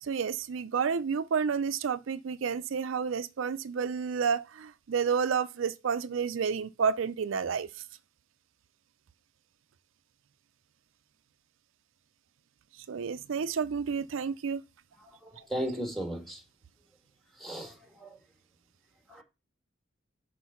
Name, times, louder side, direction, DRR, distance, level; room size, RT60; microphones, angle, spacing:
voice 1, 0.0-7.7 12.9-14.6, right 6 dB, 70° right, 0.4 m, -30 dB
voice 2, 15.2-16.4 17.4-18.2 19.1-19.2, right 1 dB, ahead, 1.6 m, -36 dB
6.3 x 4.5 x 5.6 m
head